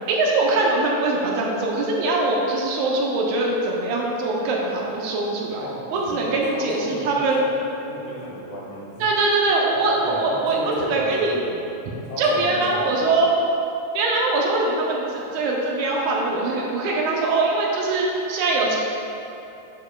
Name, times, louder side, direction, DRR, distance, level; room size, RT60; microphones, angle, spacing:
voice 1, 0.1-7.4 9.0-11.4 12.2-13.3 13.9-18.8, right 2 dB, 80° right, -2 dB, 2.0 m, -22 dB
voice 2, 5.6-9.1 9.7-11.6 12.1-13.2, equal, 75° left, -6 dB, 2.8 m, -34 dB
8.8 x 5.0 x 2.3 m, 2.9 s
omnidirectional pair, 3.5 m